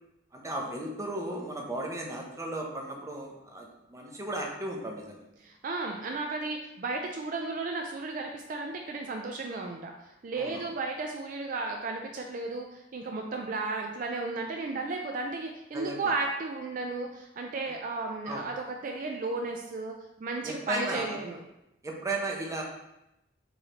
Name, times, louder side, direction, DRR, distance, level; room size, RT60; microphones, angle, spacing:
voice 1, 0.3-5.2 10.4-10.7 15.7-16.1 18.3-18.5 20.4-21.2 21.8-22.6, right 1 dB, 20° right, 0 dB, 0.6 m, -35 dB
voice 2, 5.4-21.4, right 3 dB, 50° right, 2 dB, 0.4 m, -34 dB
4.8 x 3.2 x 2.9 m, 0.89 s
head